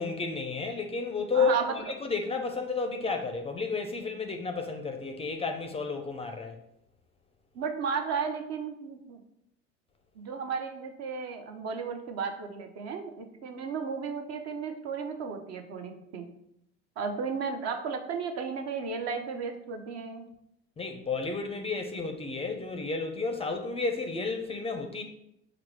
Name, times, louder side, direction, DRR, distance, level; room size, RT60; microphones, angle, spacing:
voice 1, 0.0-6.5 20.8-25.0, left 4 dB, 20° left, 5 dB, 0.4 m, -32 dB
voice 2, 1.3-1.8 7.5-9.2 10.2-16.3 17.0-20.2, right 5 dB, 55° right, 5 dB, 0.7 m, -34 dB
4.6 x 2.0 x 4.6 m, 0.78 s
supercardioid pair, 90°, 31 cm